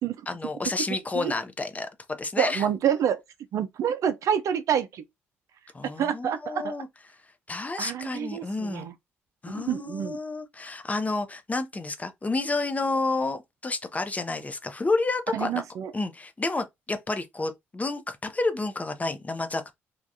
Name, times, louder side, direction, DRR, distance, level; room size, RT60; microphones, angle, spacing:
voice 1, 0.3-2.6 5.7-6.9 7.5-8.9 9.4-15.6 15.9-19.7, left 3 dB, 25° left, 0.7 m, -30 dB
voice 2, 2.4-3.2 3.5-5.0 6.0-6.8 7.8-8.9 9.5-10.2 15.3-15.9, right 9 dB, 65° right, 0.4 m, -27 dB
3.3 x 2.3 x 2.6 m
hypercardioid pair, 50°, 6 cm